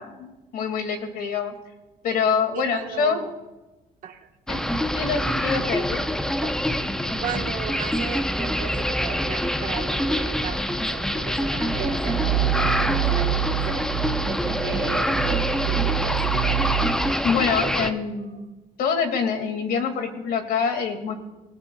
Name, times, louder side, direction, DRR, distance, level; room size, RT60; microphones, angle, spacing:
voice 1, 0.0-1.5 2.0-3.2 4.5-4.6 4.9-6.0 17.2-18.5 18.8-21.1, left 6 dB, 70° left, 6 dB, 2.1 m, -25 dB
voice 2, 2.5-3.3 4.0-4.3 6.4-6.6 7.2-13.9 14.3-16.4 17.5-18.0, right 8 dB, 55° right, 5 dB, 1.3 m, -35 dB
sound 1, 4.5-17.9, equal, 5° left, 0.7 m, -25 dB
sound 2, 11.5-17.1, right 16 dB, 85° right, 0.5 m, -27 dB
25.5 x 17.0 x 2.3 m, 1.1 s
cardioid pair, 130°, 16 cm